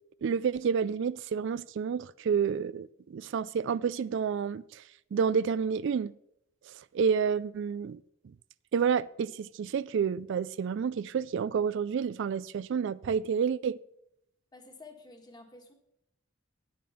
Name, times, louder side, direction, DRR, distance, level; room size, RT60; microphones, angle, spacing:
voice 1, 0.2-4.8 5.1-6.1 6.9-8.0 8.7-13.8, right 6 dB, 65° right, 0.3 m, -29 dB
voice 2, 14.5-15.7, left 3 dB, 20° left, 1.6 m, -51 dB
9.4 x 9.4 x 5.7 m
head